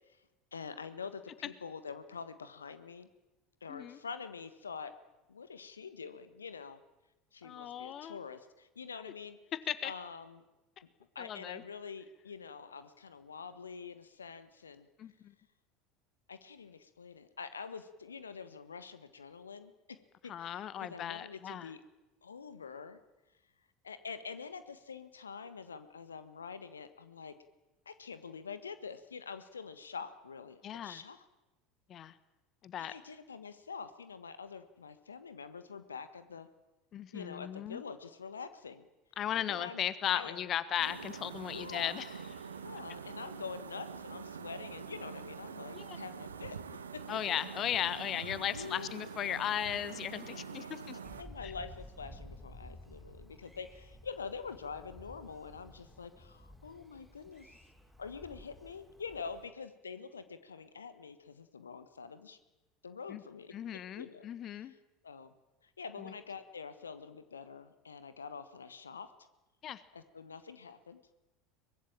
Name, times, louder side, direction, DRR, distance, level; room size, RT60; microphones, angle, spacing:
voice 1, 0.5-3.1 3.6-5.0 5.3-6.8 7.3-9.4 9.8-10.4 11.1-14.9 16.3-19.7 20.2-21.8 22.2-23.0 23.8-27.4 27.8-31.2 32.8-36.5 37.1-38.9 39.3-40.5 41.5-41.9 42.6-46.6 46.9-47.2 48.5-49.3 50.2-50.9 51.2-57.6 58.0-62.4 62.8-64.8 65.0-65.3 65.6-69.1 69.9-71.0, left 5 dB, 80° left, 12 dB, 1.4 m, -46 dB
voice 2, 3.7-4.0 7.4-8.2 9.7-9.9 11.2-11.6 15.0-15.3 20.3-21.7 30.6-31.0 31.9-32.1 32.6-32.9 36.9-37.8 39.2-42.1 45.7-46.0 47.1-51.0 51.4-51.5 63.1-63.2 63.5-64.7 66.0-66.1 69.6-69.8, left 10 dB, 40° left, 15 dB, 1.3 m, -36 dB
sound 1, 40.8-51.2, right 6 dB, 80° right, 1.3 m, -45 dB
Thunder, 51.0-59.5, left 1 dB, ahead, 5.0 m, -53 dB
23.5 x 20.0 x 8.9 m, 1.0 s
figure-of-eight pair, 75°, 0 cm